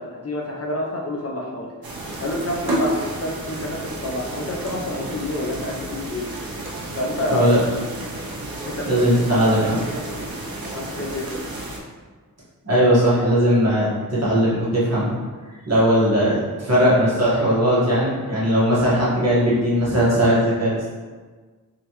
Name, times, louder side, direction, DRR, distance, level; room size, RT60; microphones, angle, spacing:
voice 1, 0.0-1.7 2.2-6.3 7.0-7.5 8.6-8.9 9.9-10.2 10.7-11.3, left 1 dB, 40° left, -2 dB, 0.6 m, -28 dB
sound 1, 1.8-11.8, right 1 dB, 80° right, 0.8 m, -31 dB
voice 2, 7.3-7.6 8.9-9.8 12.6-15.1 15.7-20.9, equal, 45° right, -8 dB, 1.5 m, -18 dB
3.8 x 3.2 x 3.0 m, 1.4 s
wide cardioid pair, 80°, 35 cm